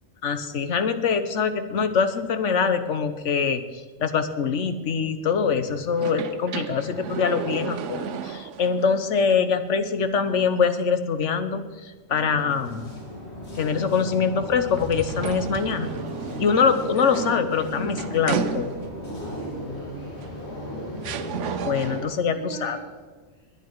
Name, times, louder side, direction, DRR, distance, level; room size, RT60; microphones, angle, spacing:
voice 1, 0.2-3.6 4.0-12.9 13.6-15.9 16.4-18.7 21.6-22.8, left 6 dB, 85° left, 10 dB, 1.3 m, -24 dB
sound 1, 5.9-8.9 9.3-9.4 14.8-19.1 20.2-20.3 21.0-22.2, right 7 dB, 85° right, 1.1 m, -33 dB
sound 2, 12.2-22.0, left 1 dB, 65° left, 2.8 m, -35 dB
voice 2, 16.5-16.9 19.0-20.3 21.8-22.9 23.3-23.4, right 3 dB, 10° right, -5 dB, 3.5 m, -43 dB
21.0 x 8.8 x 4.7 m, 1.4 s
omnidirectional pair, 1.2 m